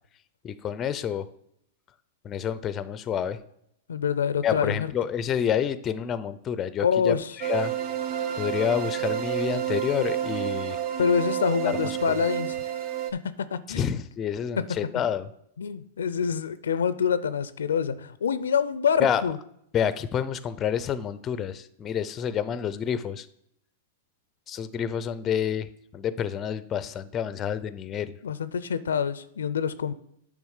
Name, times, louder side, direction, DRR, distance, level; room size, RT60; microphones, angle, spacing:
voice 1, 0.4-1.3 2.2-3.4 4.4-7.7 8.3-10.8 11.6-12.2 13.7-15.3 19.0-19.2 19.7-23.3 24.5-28.2, left 8 dB, 25° left, 15 dB, 0.5 m, -28 dB
voice 2, 3.9-4.9 6.8-7.3 11.0-12.6 13.1-13.9 15.6-19.4 28.2-29.9, left 7 dB, 90° left, 15 dB, 0.4 m, -26 dB
sound 1, 7.4-13.1, right 10 dB, 45° right, 0.8 m, -29 dB
8.5 x 3.5 x 6.5 m, 0.75 s
hypercardioid pair, 125°, 0 cm